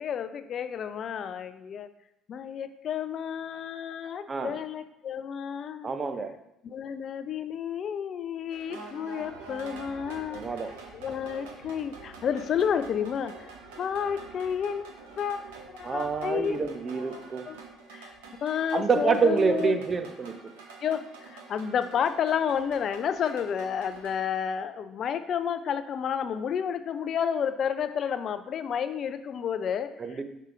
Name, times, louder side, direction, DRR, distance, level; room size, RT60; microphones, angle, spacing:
voice 1, 0.0-1.9 2.3-5.9 6.6-10.4 10.9-13.4 13.8-16.6 17.4-17.6 17.9-18.1 18.4-19.8 20.8-30.2, left 8 dB, 50° left, 11 dB, 0.4 m, -31 dB
voice 2, 4.3-4.6 5.8-6.3 10.3-10.7 15.8-17.5 18.7-20.4 30.0-30.2, right 5 dB, 35° right, 7 dB, 0.7 m, -27 dB
sound 1, 8.5-24.2, right 4 dB, 75° right, 0.9 m, -46 dB
5.5 x 3.6 x 4.9 m, 0.84 s
hypercardioid pair, 55°, 0 cm